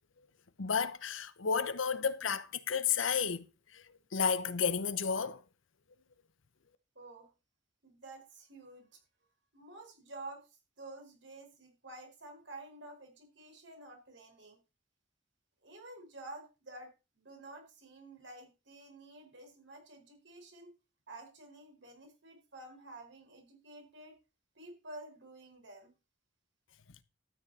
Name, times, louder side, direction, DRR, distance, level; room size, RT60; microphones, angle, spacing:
voice 1, 0.6-3.8 4.1-5.4, left 6 dB, 90° left, 0.9 m, -32 dB
voice 2, 6.9-7.3 7.8-8.9 9.5-14.6 15.6-16.9 17.2-20.7 21.1-24.1 24.5-25.9, right 2 dB, 70° right, 4.8 m, -50 dB
13.0 x 9.3 x 4.2 m
head